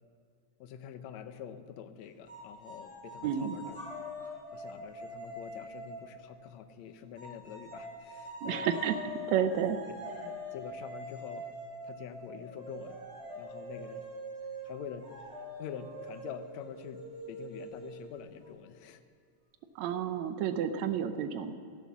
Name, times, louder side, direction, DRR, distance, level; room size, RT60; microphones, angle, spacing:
voice 1, 0.6-3.8 4.2-8.7 9.9-11.5 11.8-13.0 13.4-14.1 14.6-19.0, left 8 dB, 75° left, 10 dB, 1.7 m, -46 dB
sound 1, 2.3-6.6 7.2-18.5, equal, 10° right, 4.9 m, -44 dB
voice 2, 3.2-3.6 8.4-9.0 9.3-9.8 19.7-21.5, right 8 dB, 75° right, 9 dB, 1.6 m, -30 dB
17.5 x 11.5 x 7.2 m, 2.3 s
omnidirectional pair, 4.0 m